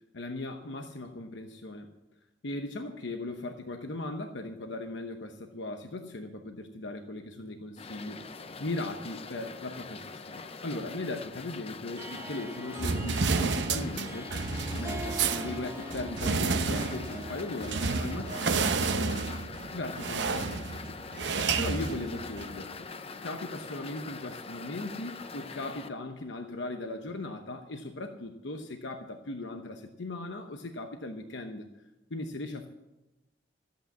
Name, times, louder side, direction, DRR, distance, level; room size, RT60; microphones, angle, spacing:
voice 1, 0.1-1.9 2.4-8.2 8.6-14.3 14.7-19.3 19.7-20.9 21.6-22.9 23.2-31.7 32.1-32.7, left 2 dB, 85° left, 5 dB, 1.0 m, -38 dB
sound 1, 7.8-25.9, left 4 dB, 35° left, 0.6 m, -43 dB
Harp, 11.9-19.7, equal, 15° right, 1.1 m, -44 dB
sound 2, 12.8-22.6, right 4 dB, 75° right, 0.8 m, -31 dB
13.5 x 8.7 x 7.3 m, 1.0 s
head